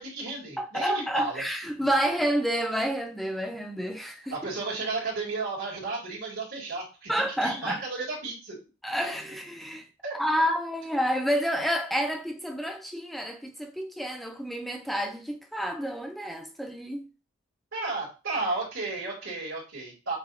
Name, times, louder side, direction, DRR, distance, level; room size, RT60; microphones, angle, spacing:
voice 1, 0.0-1.4 4.3-8.6 10.0-10.1 17.7-20.2, right 3 dB, 65° right, 2.5 m, -33 dB
voice 2, 0.6-4.4 7.1-7.8 8.8-9.9 10.1-17.1, equal, ahead, 0.7 m, -29 dB
7.0 x 2.6 x 2.6 m
head